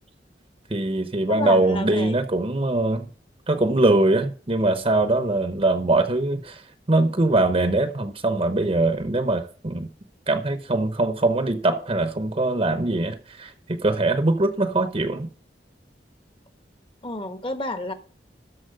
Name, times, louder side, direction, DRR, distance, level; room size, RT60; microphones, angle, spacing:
voice 1, 0.7-3.1 3.5-6.6 6.9-9.9 10.3-15.3, right 2 dB, 35° right, 0.9 m, -22 dB
voice 2, 1.3-2.1 17.0-17.9, left 1 dB, 30° left, 1.4 m, -30 dB
13.5 x 4.5 x 7.8 m
head